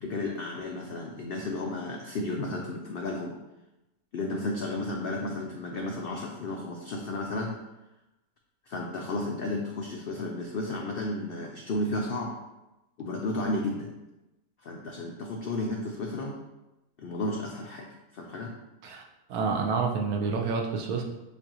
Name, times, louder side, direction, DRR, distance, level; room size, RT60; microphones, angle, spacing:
voice 1, 0.0-3.4 4.1-7.5 8.7-12.3 13.0-13.9 14.6-16.4 17.0-17.9 18.1-18.5, left 2 dB, 85° left, 1 dB, 0.5 m, -33 dB
voice 2, 19.3-21.0, right 5 dB, 80° right, 2 dB, 1.2 m, -28 dB
7.2 x 2.5 x 2.8 m, 0.98 s
omnidirectional pair, 1.5 m